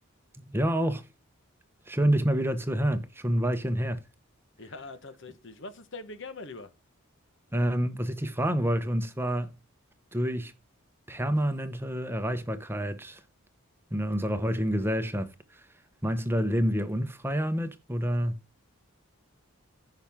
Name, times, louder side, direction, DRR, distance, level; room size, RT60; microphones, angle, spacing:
voice 1, 0.5-1.1 1.9-4.0 7.5-9.6 10.1-10.5 11.1-13.2 13.9-15.7 16.0-18.4, equal, 10° right, 0.8 m, -28 dB
voice 2, 4.6-6.7, left 3 dB, 55° left, 1.2 m, -42 dB
15.0 x 5.9 x 3.6 m
head